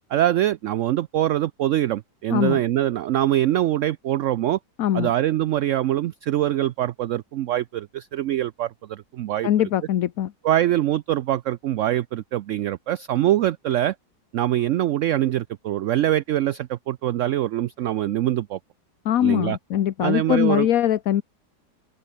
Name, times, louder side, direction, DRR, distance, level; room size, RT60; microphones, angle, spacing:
voice 1, 0.1-4.6 4.9-9.5 10.4-13.9 14.3-18.6 19.2-19.6 20.0-20.7, right 13 dB, 75° right, 0.7 m, -23 dB
voice 2, 2.3-2.6 4.8-5.1 9.4-10.3 19.0-21.2, left 11 dB, 60° left, 1.2 m, -22 dB
open air
omnidirectional pair, 1.8 m